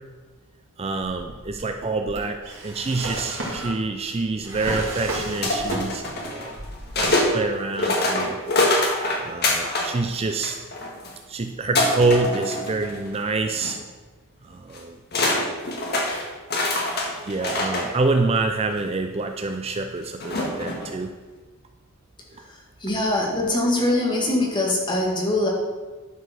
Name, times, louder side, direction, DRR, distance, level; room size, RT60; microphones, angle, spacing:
voice 1, 0.8-6.6 7.0-8.4 9.2-10.6 11.3-13.8 14.4-15.0 17.3-21.1, right 3 dB, 30° right, 6 dB, 0.5 m, -26 dB
Drawer open or close, 1.0-6.2 6.5-7.3, right 1 dB, 65° right, 2.5 m, -33 dB
sound 1, 5.4-7.3 7.8-9.9 10.3-11.1 11.8-13.2 13.5-13.7 14.7-14.8 15.1-17.9 18.7-18.8 20.2-20.9, left 2 dB, 50° left, 1.6 m, -24 dB
voice 2, 22.8-25.5, left 1 dB, 20° left, -2 dB, 1.9 m, -22 dB
11.0 x 5.0 x 6.1 m, 1.3 s
head